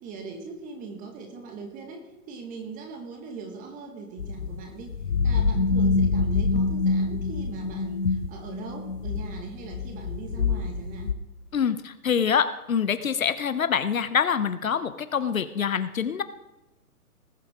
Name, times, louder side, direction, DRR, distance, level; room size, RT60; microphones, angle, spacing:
voice 1, 0.0-5.0 5.2-11.1, right 4 dB, 15° right, 4 dB, 1.8 m, -40 dB
sound 1, 4.2-11.1, left 4 dB, 85° left, 1.0 m, -26 dB
voice 2, 11.5-16.2, left 7 dB, 60° left, 13 dB, 0.9 m, -25 dB
20.0 x 8.5 x 3.6 m, 1.0 s
figure-of-eight pair, 130°, 45 cm